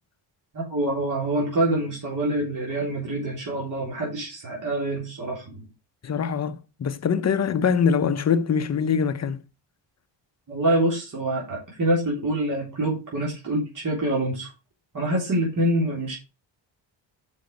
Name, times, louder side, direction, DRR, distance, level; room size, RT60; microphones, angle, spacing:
voice 1, 0.5-5.6 10.5-14.5 14.9-16.2, right 1 dB, 45° right, 3.5 m, -26 dB
voice 2, 6.0-9.4, left 6 dB, 35° left, 0.8 m, -23 dB
6.7 x 5.3 x 5.2 m
cardioid pair, 135°, 45 cm